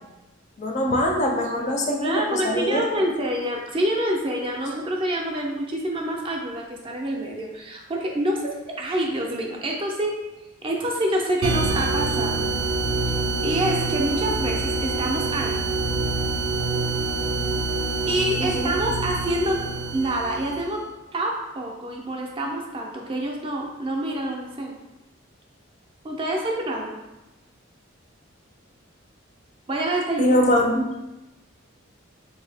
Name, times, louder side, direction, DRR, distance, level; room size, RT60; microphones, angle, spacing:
voice 1, 0.6-2.8 18.4-18.7 30.2-30.8, equal, 35° left, 1 dB, 0.4 m, -22 dB
voice 2, 2.0-10.2 10.6-12.5 13.4-15.6 18.1-19.6 19.9-20.8 21.1-24.8 26.0-26.9 29.7-30.4, right 1 dB, 25° right, 0 dB, 0.4 m, -27 dB
sound 1, 11.4-20.8, right 3 dB, 85° right, 0.5 m, -26 dB
3.4 x 2.7 x 3.3 m, 1.0 s
head